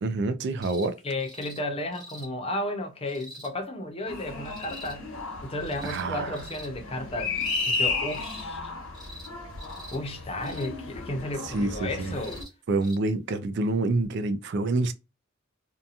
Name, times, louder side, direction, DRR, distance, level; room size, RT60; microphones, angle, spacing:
voice 1, 0.0-1.0 5.8-6.4 11.5-12.1 12.7-14.9, right 2 dB, 60° right, 0.4 m, -27 dB
sound 1, 0.6-0.9 1.2-1.6 1.9-2.3 3.1-3.5 4.4-4.9 5.6-6.0 6.3-6.7 7.3-7.8 8.1-8.4 8.9-9.3 9.6-10.0 10.4-10.7 12.0-12.5 12.8-13.0 14.0-14.1, equal, 20° right, 1.2 m, -45 dB
voice 2, 1.0-5.1 5.4-7.4 7.7-8.7 9.9-12.4, left 1 dB, 30° left, 0.7 m, -33 dB
sound 2, 4.1-12.4, left 3 dB, 80° left, 1.1 m, -34 dB
2.8 x 2.3 x 2.4 m
head